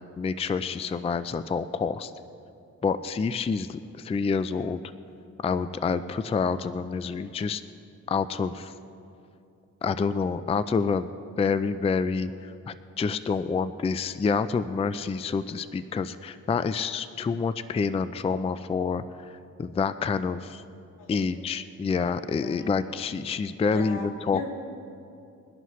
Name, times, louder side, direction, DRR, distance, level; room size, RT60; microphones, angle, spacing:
voice 1, 0.2-2.1 2.8-4.8 5.4-7.6 8.1-8.7 9.8-11.1 11.4-20.6 21.1-24.5, left 5 dB, 20° left, 13 dB, 0.4 m, -28 dB
voice 2, 21.0-21.3 22.0-22.7 23.7-24.5, left 4 dB, 80° left, 1 dB, 2.3 m, -40 dB
22.0 x 11.0 x 3.2 m, 2.6 s
cardioid pair, 85°, 31 cm